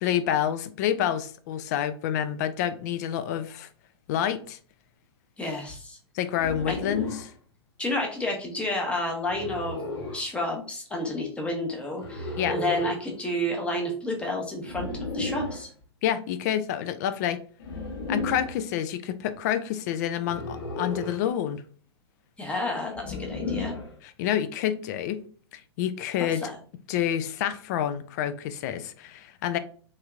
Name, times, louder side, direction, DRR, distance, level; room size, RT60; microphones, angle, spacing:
voice 1, 0.0-3.7 4.1-4.6 6.1-7.2 12.4-12.6 16.0-17.4 18.1-21.6 24.2-25.2 25.5-26.4 26.9-29.6, left 10 dB, 40° left, 0.4 m, -28 dB
voice 2, 5.4-6.0 6.7-6.8 7.8-9.8 10.1-15.7 22.4-23.7 26.2-26.6, left 1 dB, 10° left, 0.8 m, -30 dB
sound 1, 6.3-7.3 9.2-10.2 12.0-13.0 14.6-15.6 17.6-18.6 20.2-21.3 22.9-23.9, left 2 dB, 60° left, 1.0 m, -33 dB
3.3 x 2.8 x 2.3 m
figure-of-eight pair, 110°, 14 cm